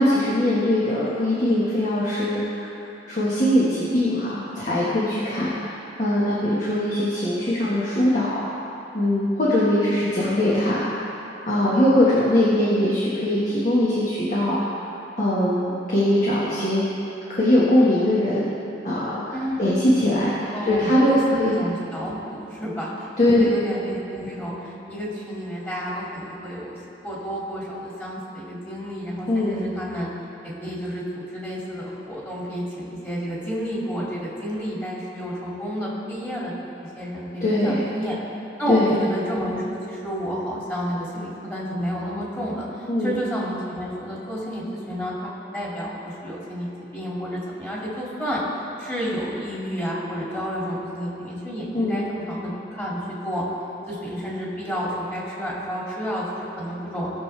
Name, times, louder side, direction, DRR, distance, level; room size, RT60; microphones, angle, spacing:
voice 1, 0.0-2.7 3.1-8.4 8.9-10.9 11.4-14.9 15.2-16.8 17.3-18.5 18.8-21.5 23.2-23.8 29.3-29.7 37.4-37.9 38.7-39.0 42.9-43.2 51.7-52.0, left 1 dB, 45° left, -8 dB, 1.5 m, -21 dB
voice 2, 19.3-26.8 27.0-30.1 30.4-36.5 36.8-38.2 38.6-39.6 39.9-45.2 45.5-48.4 48.8-53.4 53.9-57.1, equal, 10° left, -6 dB, 2.4 m, -30 dB
18.0 x 6.6 x 3.3 m, 2.8 s
head